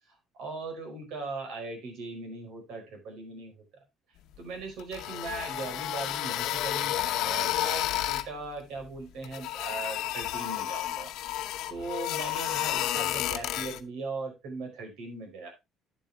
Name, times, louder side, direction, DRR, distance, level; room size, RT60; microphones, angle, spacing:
voice 1, 0.4-3.5 4.4-11.1 11.7-15.5, right 3 dB, 75° right, 3 dB, 4.9 m, -39 dB
sound 1, 4.8-8.3 9.2-13.8, left 14 dB, 75° left, 0.8 m, -31 dB
10.0 x 7.6 x 3.4 m, 0.23 s
cardioid pair, 150°, 0 cm